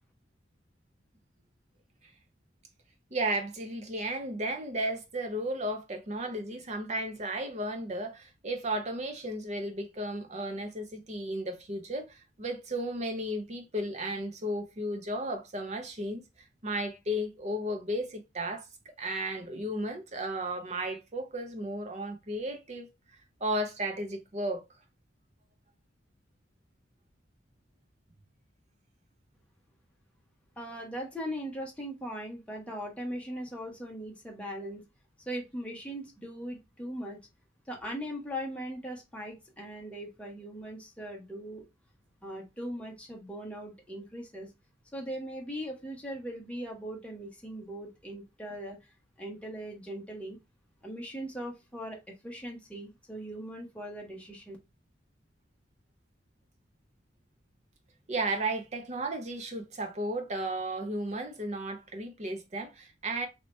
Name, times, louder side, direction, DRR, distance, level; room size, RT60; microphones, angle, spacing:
voice 1, 3.1-16.2 16.6-18.7 19.0-22.9 23.4-24.6 58.1-63.3, right 1 dB, 35° right, 0.7 m, -34 dB
voice 2, 30.6-34.9 35.3-37.2 37.7-41.6 42.2-44.5 44.9-48.8 49.2-50.4 50.8-54.6, equal, 5° left, 1.0 m, -39 dB
2.9 x 2.9 x 3.2 m
head